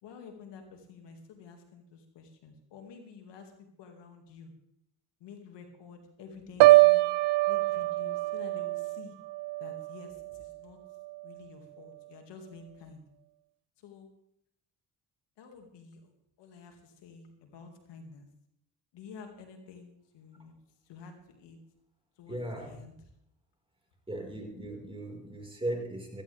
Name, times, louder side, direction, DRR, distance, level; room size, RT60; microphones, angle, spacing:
voice 1, 0.0-4.5 5.2-7.1 7.5-9.1 9.6-10.8 11.2-13.0 13.8-14.1 15.4-16.1 16.4-18.3 18.9-20.5 20.9-21.6 22.2-22.9, left 5 dB, 80° left, 4 dB, 2.4 m, -50 dB
Piano, 6.6-10.6 10.9-11.3, right 19 dB, 80° right, 0.6 m, -24 dB
voice 2, 22.3-22.7 24.1-26.2, right 1 dB, 15° right, 1 dB, 4.9 m, -37 dB
16.0 x 14.5 x 3.5 m, 0.73 s
supercardioid pair, 70°, 42 cm